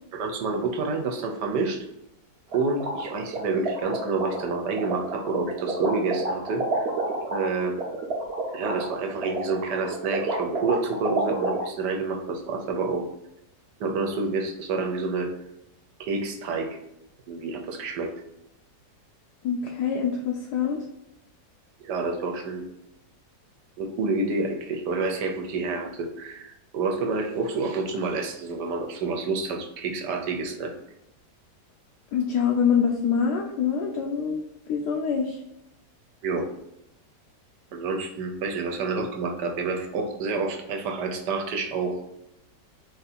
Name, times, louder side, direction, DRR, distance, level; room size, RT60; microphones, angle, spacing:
voice 1, 0.1-1.8 2.5-6.9 7.3-7.8 8.5-13.0 13.8-15.3 16.0-16.8 17.3-18.1 21.8-22.6 23.8-30.7 36.2-36.4 37.7-42.1, right 3 dB, 75° right, 4 dB, 1.3 m, -28 dB
sound 1, 2.5-11.6, right 3 dB, 45° right, 1.0 m, -29 dB
voice 2, 19.4-20.8 32.1-34.4 34.7-35.4, left 6 dB, 75° left, 0 dB, 1.1 m, -25 dB
4.0 x 2.7 x 4.1 m, 0.84 s
omnidirectional pair, 1.9 m